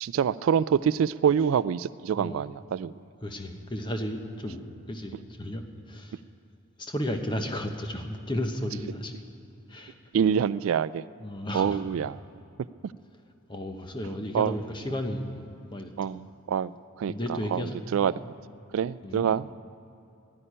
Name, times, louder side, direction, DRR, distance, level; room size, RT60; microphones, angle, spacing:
voice 1, 0.0-2.9 10.1-11.0 11.5-12.2 14.3-14.6 16.0-16.7 17.0-18.1 18.7-19.5, right 8 dB, 75° right, 18 dB, 0.3 m, -26 dB
voice 2, 3.2-6.2 6.8-9.1 9.7-10.0 11.2-11.8 13.5-16.1 17.1-17.8 18.0-18.2 19.0-19.3, left 1 dB, 20° left, 5 dB, 1.0 m, -34 dB
11.5 x 11.0 x 10.0 m, 2.8 s
head